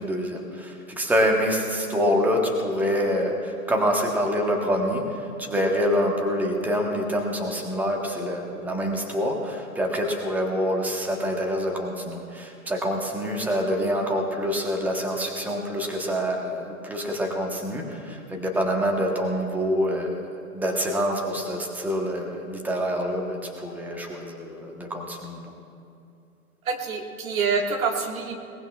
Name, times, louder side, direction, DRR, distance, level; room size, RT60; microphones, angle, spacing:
voice 1, 0.0-20.2 20.5-25.5, equal, 5° right, 1 dB, 1.2 m, -26 dB
voice 2, 26.7-28.3, right 5 dB, 65° right, 1 dB, 2.0 m, -26 dB
21.5 x 18.5 x 2.4 m, 2.5 s
hypercardioid pair, 130°, 45 cm